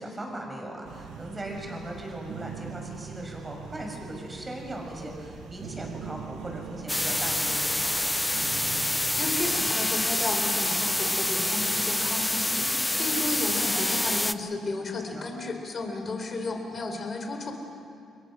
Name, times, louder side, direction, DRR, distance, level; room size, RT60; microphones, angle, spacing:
voice 1, 0.0-8.1 12.9-13.2 15.1-15.3, right 1 dB, 20° right, 1 dB, 6.2 m, -38 dB
sound 1, 0.8-9.7, right 7 dB, 85° right, 1.4 m, -42 dB
sound 2, 6.9-14.3, left 1 dB, 10° left, 0.7 m, -27 dB
voice 2, 8.8-17.5, left 2 dB, 40° left, 4 dB, 4.2 m, -33 dB
29.5 x 22.0 x 6.4 m, 2.5 s
cardioid pair, 90°, 0 cm